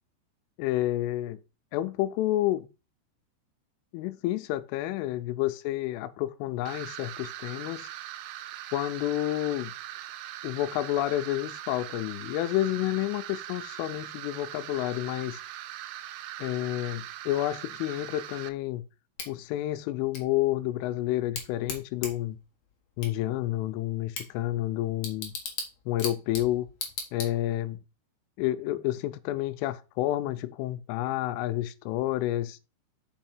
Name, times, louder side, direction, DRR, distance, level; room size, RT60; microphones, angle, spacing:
voice 1, 0.6-1.4 1.7-2.7 3.9-7.9 8.7-9.7 10.4-15.4 16.4-18.8 19.3-22.4 23.0-25.3 25.9-26.7 27.1-27.8 28.4-32.6, left 14 dB, 85° left, 3.1 m, -30 dB
sound 1, 6.7-18.5, right 13 dB, 80° right, 3.1 m, -41 dB
Bicycle / Tick, 19.2-27.7, left 5 dB, 65° left, 1.7 m, -40 dB
6.3 x 5.5 x 4.3 m
omnidirectional pair, 5.6 m